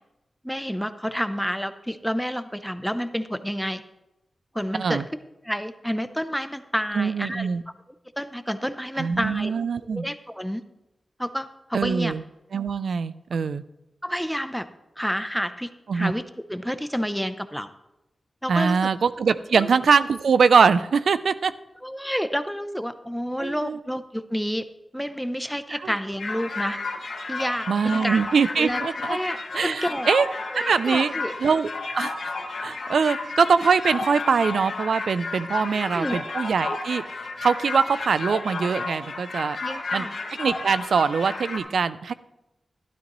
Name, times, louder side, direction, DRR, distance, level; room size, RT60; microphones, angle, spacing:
voice 1, 0.4-3.8 4.5-5.0 5.4-7.5 8.2-9.5 9.9-10.6 11.2-12.1 14.0-14.7 15.0-16.2 16.5-17.7 18.4-18.8 19.5-19.7 21.8-24.7 24.9-26.8 27.3-28.2 28.6-28.8 29.1-30.1 30.5-31.3 35.7-36.2 39.6-40.2, equal, ahead, 11 dB, 0.5 m, -29 dB
voice 2, 6.9-7.6 9.0-10.1 11.7-12.2 12.5-13.6 15.9-16.1 18.5-21.5 23.4-23.8 25.7-25.9 27.7-29.2 29.5-30.3 30.5-31.1 31.4-31.7 32.0-32.3 32.6-37.0 37.4-39.6 39.9-40.1 40.4-42.1, right 5 dB, 90° right, 15 dB, 0.4 m, -22 dB
sound 1, 26.2-41.6, left 3 dB, 70° left, 2.1 m, -32 dB
12.5 x 12.0 x 3.0 m, 0.92 s
wide cardioid pair, 145°, 0 cm